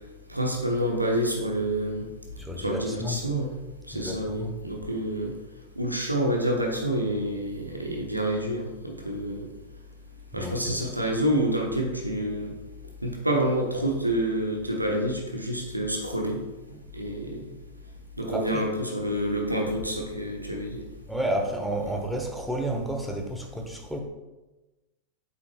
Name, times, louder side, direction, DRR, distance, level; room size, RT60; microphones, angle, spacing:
voice 1, 0.3-2.1 2.6-3.5 3.9-5.3 5.8-9.4 10.3-12.5 13.0-16.4 16.9-17.5 18.2-20.8, right 1 dB, 85° right, 1 dB, 1.0 m, -28 dB
voice 2, 2.4-3.2 3.9-4.6 10.3-10.9 18.3-18.7 21.1-24.0, right 1 dB, ahead, 1 dB, 1.0 m, -31 dB
8.1 x 5.7 x 2.3 m, 1.1 s
figure-of-eight pair, 90°, 0 cm